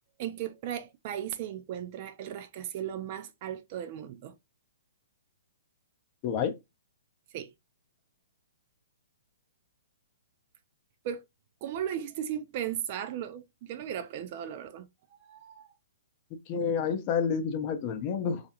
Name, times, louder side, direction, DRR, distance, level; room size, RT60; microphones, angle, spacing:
voice 1, 0.2-4.3 7.3-7.5 11.0-11.2 11.6-15.7, right 10 dB, 40° right, 0.4 m, -36 dB
voice 2, 6.2-6.5 16.5-18.4, left 6 dB, 35° left, 0.5 m, -29 dB
2.4 x 2.1 x 2.8 m
hypercardioid pair, 135°, 0 cm